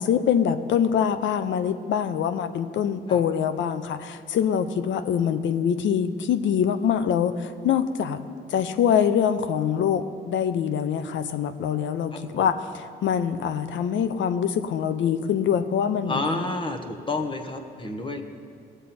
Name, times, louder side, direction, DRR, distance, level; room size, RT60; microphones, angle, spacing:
voice 1, 0.0-8.2 8.5-12.6 13.0-16.4, left 8 dB, 70° left, 11 dB, 0.7 m, -24 dB
voice 2, 16.1-18.2, left 2 dB, 25° left, 5 dB, 1.1 m, -29 dB
18.0 x 7.4 x 4.3 m, 2.2 s
cardioid pair, 90°, 20 cm